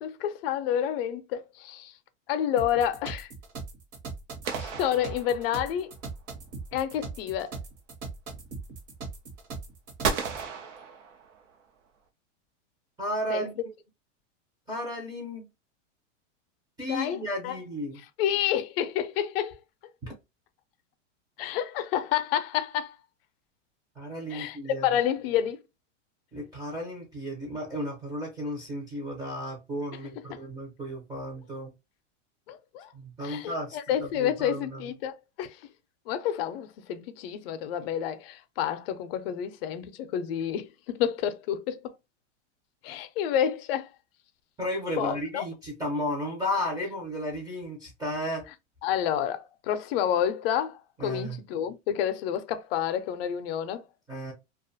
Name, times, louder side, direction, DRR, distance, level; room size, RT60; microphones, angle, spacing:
voice 1, 0.0-1.9 2.3-3.3 4.6-5.9 6.7-7.6 13.3-13.5 16.9-17.6 18.2-19.6 21.4-23.0 24.3-25.6 30.3-30.4 32.5-32.9 33.2-35.6 36.1-41.9 42.8-43.9 45.0-45.4 48.8-53.8, left 10 dB, 55° left, 0.5 m, -29 dB
sound 1, 2.6-10.5, right 4 dB, 45° right, 0.9 m, -40 dB
sound 2, 4.4-5.9 10.0-11.6, right 6 dB, 75° right, 0.8 m, -34 dB
voice 2, 13.0-13.7 14.7-15.5 16.8-18.0 20.0-20.1 24.0-24.9 26.3-31.7 32.9-33.8 34.2-34.9 44.6-48.4 51.0-51.4 54.1-54.3, equal, 10° right, 0.5 m, -33 dB
2.4 x 2.3 x 2.6 m
supercardioid pair, 145°, 37 cm